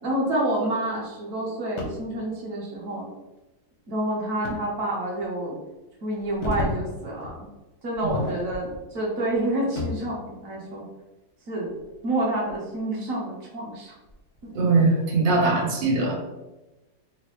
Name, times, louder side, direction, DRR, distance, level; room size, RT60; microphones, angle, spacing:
voice 1, 0.0-3.1 3.9-5.5 6.0-7.5 7.8-10.9 11.5-11.7 12.0-14.0 14.4-14.5, right 1 dB, 55° right, -3 dB, 1.1 m, -28 dB
sound 1, 1.8-2.1 4.4-4.6 5.2-5.3 6.1-6.8 7.2-7.4 7.9-8.8 9.2-10.1 11.7-12.8 13.3-13.4 14.1-14.4, left 2 dB, 65° left, 0.7 m, -33 dB
voice 2, 14.5-16.2, right 3 dB, 85° right, -3 dB, 0.4 m, -21 dB
4.0 x 2.1 x 2.9 m, 1.0 s
omnidirectional pair, 2.0 m